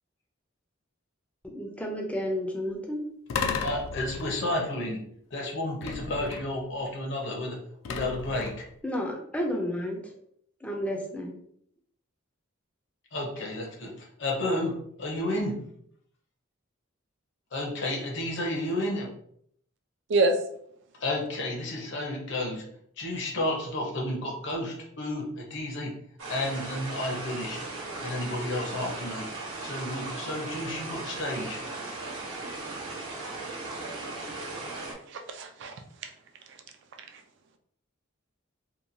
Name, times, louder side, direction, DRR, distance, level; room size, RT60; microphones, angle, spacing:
voice 1, 1.4-3.1 8.8-10.1 10.6-11.3, equal, 5° left, 0 dB, 0.4 m, -31 dB
sound 1, 3.3-4.7 5.8-6.7 7.8-8.8, left 5 dB, 80° left, 0.3 m, -34 dB
voice 2, 3.6-5.0 5.3-7.6 7.9-8.7 13.1-15.5 17.5-19.1 21.0-22.6 23.0-25.9 26.3-27.7 28.0-29.3 29.6-31.6, left 1 dB, 60° left, 0 dB, 0.7 m, -31 dB
sound 2, 26.2-34.9, right 2 dB, 85° right, 0.9 m, -37 dB
voice 3, 35.1-36.1 36.5-36.6 37.1-37.2, right 2 dB, 60° right, 5 dB, 0.4 m, -27 dB
2.9 x 2.2 x 2.6 m, 0.68 s
head